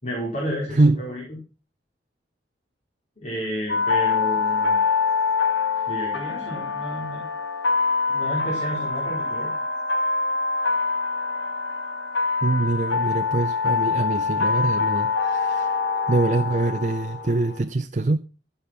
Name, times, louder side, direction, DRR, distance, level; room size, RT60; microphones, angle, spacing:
voice 1, 0.0-1.2 3.2-4.8 5.9-7.2 8.1-9.5, equal, 40° left, 4.3 m, -31 dB
voice 2, 0.7-1.0 12.4-15.8 16.1-18.2, right 2 dB, 45° right, 0.6 m, -23 dB
sound 1, 3.7-17.6, left 4 dB, 85° left, 2.2 m, -25 dB
15.0 x 5.7 x 5.9 m
head